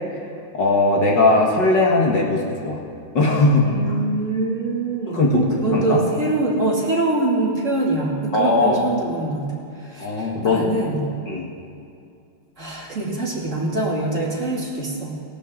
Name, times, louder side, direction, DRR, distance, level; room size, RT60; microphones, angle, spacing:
voice 1, 0.5-2.8 3.1-3.6 5.1-5.4 5.7-6.0 8.3-8.9 10.0-10.7 11.3-11.5, left 2 dB, 60° left, -2 dB, 2.4 m, -18 dB
voice 2, 3.6-9.5 9.7-11.1 12.6-15.2, right 2 dB, 35° right, -4 dB, 2.8 m, -24 dB
18.0 x 17.0 x 3.9 m, 2.5 s
omnidirectional pair, 2.3 m